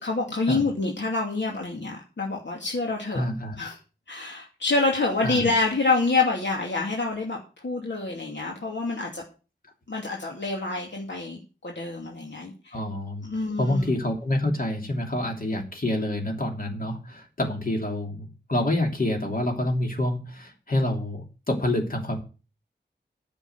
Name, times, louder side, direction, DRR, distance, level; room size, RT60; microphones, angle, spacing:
voice 1, 0.0-3.2 3.6-3.8 4.1-7.4 7.6-9.2 9.9-12.8 13.2-13.9, left 3 dB, 75° left, -1 dB, 2.5 m, -27 dB
voice 2, 3.1-3.6 5.2-5.5 12.7-13.3 13.6-22.2, left 1 dB, 50° left, 1 dB, 3.1 m, -27 dB
10.0 x 7.1 x 8.0 m, 0.34 s
wide cardioid pair, 75°, 19 cm